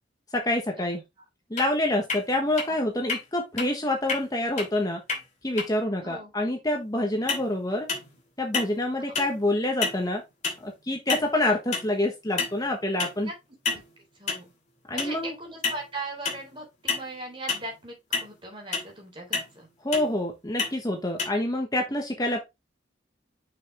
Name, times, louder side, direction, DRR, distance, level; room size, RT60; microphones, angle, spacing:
voice 1, 0.3-1.0 1.5-5.0 5.4-7.9 8.4-10.2 10.6-13.3 14.9-15.3 19.8-22.4, left 1 dB, 20° left, 1.2 m, -27 dB
sound 1, 1.6-1.7 2.1-2.2 2.6-2.7 3.1-3.2 3.6-3.7 4.1-4.2 4.6-4.7 5.1-5.2 5.6-5.7 7.3-7.5 7.9-8.2 8.5-8.8 9.1-9.4 9.8-10.0 10.4-10.6 11.1-11.3 11.7-11.9 12.4-12.6 13.0-13.2 13.6-13.8 14.3-14.4 15.0-15.1 15.6-15.8 16.2-16.5 16.9-17.0 17.5-17.7 18.1-18.3 18.7-18.9 19.3-19.5 19.9-20.1 20.6-20.8 21.2-21.3, left 5 dB, 40° left, 2.7 m, -29 dB
voice 2, 14.1-14.5 14.9-19.7, right 2 dB, 30° right, 3.7 m, -39 dB
6.6 x 5.7 x 3.5 m
head